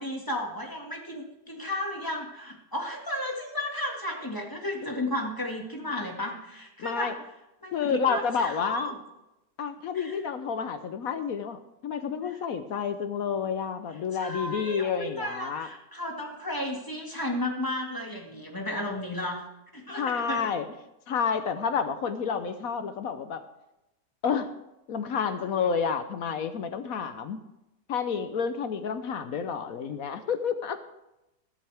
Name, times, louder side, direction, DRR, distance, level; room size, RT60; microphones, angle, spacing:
voice 1, 0.0-7.2 7.6-9.0 9.9-10.2 12.2-12.4 14.1-19.5 19.7-20.5, left 1 dB, 10° left, 0 dB, 1.9 m, -33 dB
voice 2, 6.8-7.1 7.7-8.9 9.6-15.7 19.9-20.6 21.1-23.4 24.2-24.5 24.9-27.4 27.9-30.8, left 6 dB, 60° left, 9 dB, 1.1 m, -30 dB
15.0 x 12.5 x 3.5 m, 0.92 s
omnidirectional pair, 1.9 m